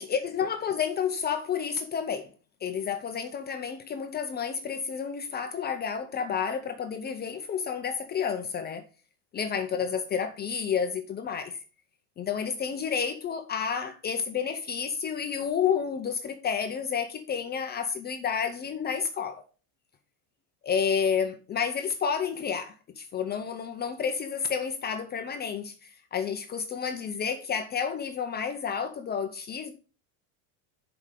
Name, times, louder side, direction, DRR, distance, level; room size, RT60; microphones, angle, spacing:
voice 1, 0.0-2.3 2.6-8.8 9.3-11.6 12.2-19.4 20.6-29.7, left 7 dB, 20° left, 0.6 m, -30 dB
11.0 x 5.0 x 3.7 m
cardioid pair, 155°, 44 cm